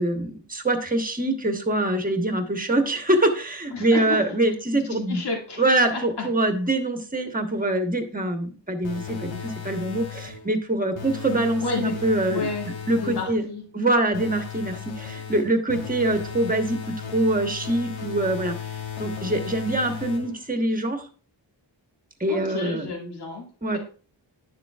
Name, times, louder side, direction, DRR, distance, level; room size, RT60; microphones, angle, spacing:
voice 1, 0.0-5.2 5.6-12.5 12.9-13.5 13.7-18.5 19.0-21.1 22.2-22.9 23.6-23.8, right 1 dB, 20° right, 5 dB, 1.1 m, -24 dB
voice 2, 3.7-4.2 5.1-5.6 5.9-6.2 11.6-11.9 12.3-12.7 12.9-13.6 22.3-23.5, left 4 dB, 60° left, -1 dB, 1.9 m, -30 dB
sound 1, 8.8-10.5 10.9-13.4 14.1-20.5, left 7 dB, 80° left, 1.3 m, -36 dB
10.5 x 6.8 x 2.4 m, 0.40 s
wide cardioid pair, 130°, 45 cm